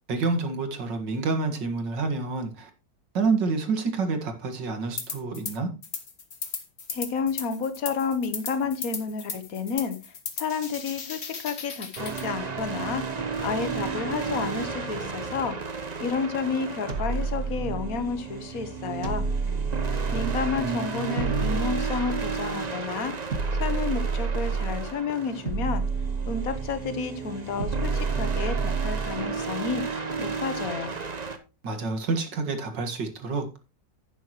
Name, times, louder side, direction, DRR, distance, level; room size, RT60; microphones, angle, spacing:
voice 1, 0.1-2.7 3.1-5.7 20.6-21.7 31.6-33.6, right 4 dB, 75° right, 2.4 m, -28 dB
sound 1, 5.0-5.5 5.8-12.3, left 5 dB, 40° left, 1.5 m, -36 dB
voice 2, 6.9-13.0 13.4-15.5 16.0-19.3 20.1-23.1 23.5-25.8 26.3-29.8 30.2-31.0, left 5 dB, 55° left, 1.6 m, -31 dB
sound 2, 12.0-31.4, right 5 dB, 30° right, 0.9 m, -34 dB
sound 3, 16.9-18.2 19.0-20.7 21.2-22.6 23.3-24.9 25.5-26.9 27.6-29.2, right 4 dB, 50° right, 1.5 m, -29 dB
11.0 x 9.8 x 3.1 m
omnidirectional pair, 2.0 m